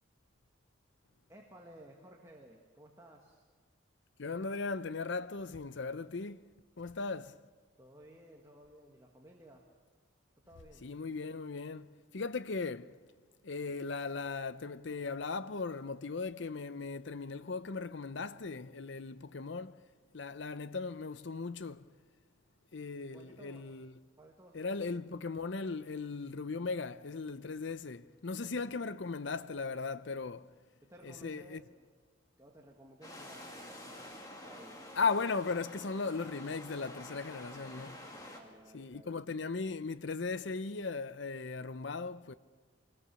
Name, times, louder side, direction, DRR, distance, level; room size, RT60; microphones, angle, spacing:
voice 1, 1.3-3.4 7.8-9.7 10.5-10.8 23.1-23.8 24.2-25.0 28.3-28.9 30.9-31.8 32.4-34.1 34.5-34.9 38.3-39.3, right 1 dB, 15° right, 1.8 m, -56 dB
voice 2, 4.2-6.4 6.8-7.4 10.8-12.9 13.4-19.8 20.1-21.8 22.7-23.9 24.5-30.5 31.0-31.6 35.0-38.0 38.7-42.3, left 4 dB, 65° left, 0.6 m, -37 dB
sound 1, 33.0-38.4, left 1 dB, 20° left, 2.5 m, -49 dB
25.0 x 20.0 x 7.0 m
head